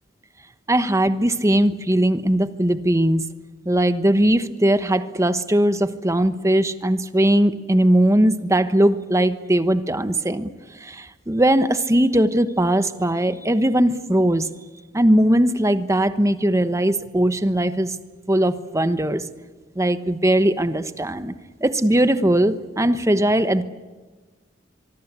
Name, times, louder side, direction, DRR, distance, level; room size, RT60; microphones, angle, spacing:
voice 1, 0.7-3.3 3.6-10.5 10.8-14.5 14.9-18.0 18.3-19.3 19.7-21.3 21.6-23.6, right 1 dB, 15° right, 11 dB, 1.1 m, -19 dB
24.5 x 23.5 x 8.3 m, 1.3 s
head